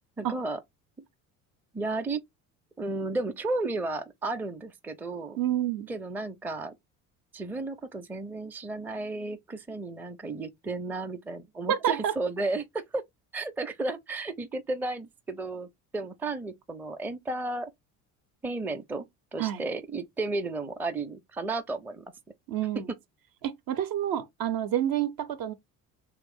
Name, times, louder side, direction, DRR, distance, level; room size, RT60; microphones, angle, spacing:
voice 1, 0.2-0.6 1.7-2.2 2.8-5.4 5.9-6.8 7.3-13.0 13.3-17.7 18.4-19.1 19.3-22.0, right 3 dB, 5° right, 0.5 m, -33 dB
voice 2, 5.4-5.9 11.7-12.1 19.4-19.6 22.5-22.9 23.4-25.5, right 11 dB, 55° right, 0.7 m, -28 dB
3.1 x 2.5 x 3.4 m
hypercardioid pair, 60°, 43 cm